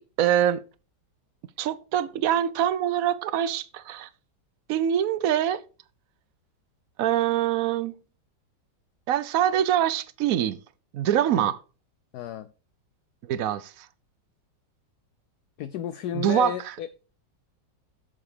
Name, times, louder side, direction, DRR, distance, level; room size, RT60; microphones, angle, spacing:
voice 1, 0.2-0.6 1.6-4.1 4.7-5.6 7.0-7.9 9.1-10.6 10.9-11.6 13.3-13.9 16.1-16.5, right 10 dB, 65° right, 0.9 m, -24 dB
voice 2, 12.1-12.5 15.6-17.0, left 10 dB, 70° left, 1.0 m, -33 dB
7.9 x 7.2 x 4.9 m
omnidirectional pair, 2.0 m